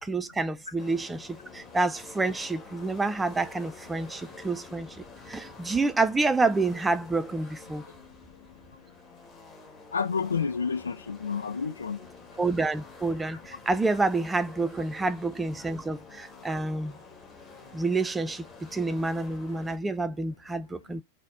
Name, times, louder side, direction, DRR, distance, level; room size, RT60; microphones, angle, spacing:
voice 1, 0.0-7.8 12.4-16.9 17.7-21.0, right 3 dB, 10° right, 0.4 m, -28 dB
sound 1, 0.8-19.8, left 4 dB, 15° left, 1.2 m, -49 dB
voice 2, 9.9-12.0, left 5 dB, 75° left, 0.6 m, -29 dB
4.0 x 2.1 x 3.7 m
figure-of-eight pair, 90°, 0 cm